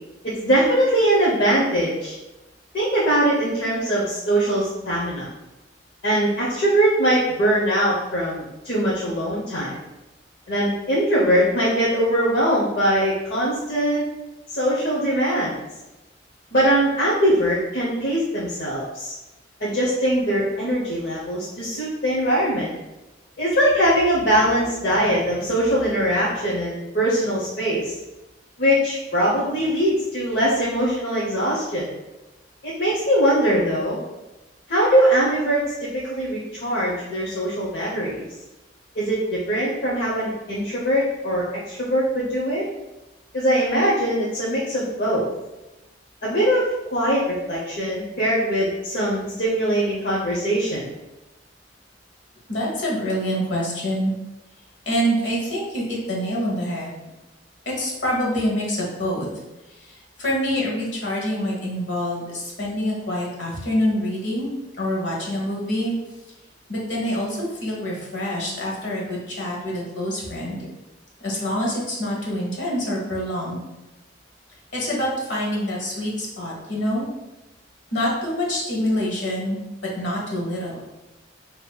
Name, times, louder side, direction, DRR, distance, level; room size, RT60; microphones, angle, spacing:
voice 1, 0.2-2.2 2.7-5.3 6.0-9.8 10.5-14.0 14.5-15.5 16.5-19.1 19.6-22.7 23.4-27.9 28.6-31.9 32.6-34.0 34.7-38.3 39.0-42.6 43.3-45.3 46.2-50.9, right 1 dB, 60° left, -7 dB, 0.8 m, -21 dB
voice 2, 52.5-54.1 54.8-56.9 57.6-59.3 59.7-64.5 64.8-65.9 66.7-70.6 71.2-73.6 74.7-77.1 77.9-79.6 80.0-80.7, equal, 90° left, -3 dB, 1.2 m, -26 dB
5.3 x 2.9 x 2.3 m, 1.0 s
head